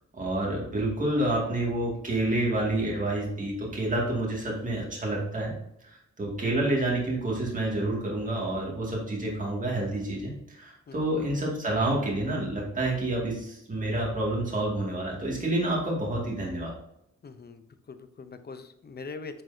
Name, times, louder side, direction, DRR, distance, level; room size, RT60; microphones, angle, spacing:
voice 1, 0.1-5.5 5.8-16.8, right 1 dB, 25° right, -3 dB, 2.2 m, -28 dB
voice 2, 10.9-11.2 17.2-19.4, left 4 dB, 35° left, 10 dB, 0.7 m, -43 dB
8.7 x 7.1 x 2.8 m, 0.79 s
wide cardioid pair, 160°, 29 cm